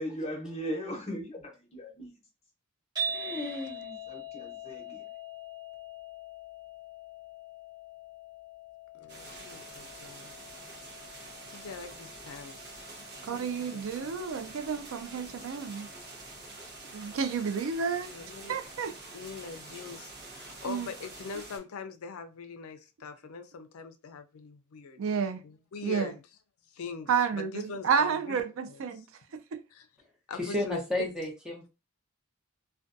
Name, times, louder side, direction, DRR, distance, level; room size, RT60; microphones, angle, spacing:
voice 1, 0.0-2.2 4.1-5.1, equal, 30° left, 0.9 m, -38 dB
sound 1, 3.0-19.2, right 1 dB, 20° right, 1.0 m, -44 dB
voice 2, 3.1-4.0 30.4-31.7, left 1 dB, 5° right, 0.7 m, -33 dB
voice 3, 8.9-10.4 11.1-12.8 13.3-14.2 18.1-18.6 19.1-25.0 25.4-26.2 26.7-28.4 28.7-28.8 29.7-29.9 30.3-30.8, left 5 dB, 85° left, 0.4 m, -43 dB
sound 2, 9.1-21.6, right 3 dB, 50° right, 0.8 m, -47 dB
voice 4, 13.3-15.9 16.9-18.1 18.5-18.9 20.7-20.9 25.0-25.4 25.8-26.1 27.1-29.0 29.5-29.6, right 6 dB, 70° right, 0.4 m, -30 dB
2.5 x 2.2 x 2.5 m
head